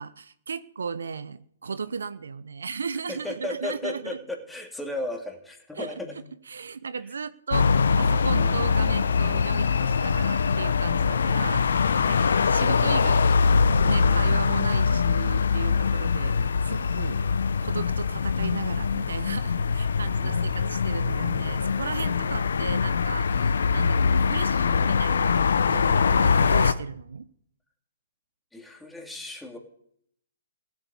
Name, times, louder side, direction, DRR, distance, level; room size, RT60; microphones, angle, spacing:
voice 1, 0.0-4.2 5.8-5.9 6.5-7.7 8.0-16.4 16.6-17.2 17.6-25.4 25.7-27.3, right 5 dB, 75° right, 15 dB, 0.9 m, -35 dB
voice 2, 3.1-6.2 28.5-29.6, left 2 dB, 5° left, 2 dB, 2.8 m, -36 dB
sound 1, 7.5-26.7, left 5 dB, 70° left, 1.0 m, -23 dB
16.5 x 8.6 x 9.7 m, 0.69 s
hypercardioid pair, 135°, 0 cm